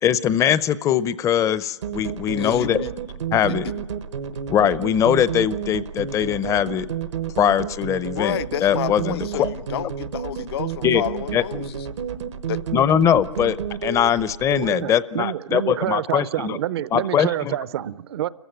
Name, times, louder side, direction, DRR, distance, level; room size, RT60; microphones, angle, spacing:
voice 1, 0.0-2.8 3.3-3.6 4.5-6.9 7.4-9.5 10.8-11.0 11.3-11.4 12.7-16.6 16.9-17.6, left 9 dB, 20° left, 0.6 m, -21 dB
sound 1, 1.8-14.7, right 8 dB, 80° right, 1.2 m, -30 dB
voice 2, 2.4-2.9 3.7-3.9 8.1-11.9 12.5-12.6, left 12 dB, 60° left, 0.7 m, -30 dB
voice 3, 14.6-18.3, right 12 dB, 60° right, 0.8 m, -27 dB
28.5 x 15.0 x 9.3 m
hypercardioid pair, 130°, 15 cm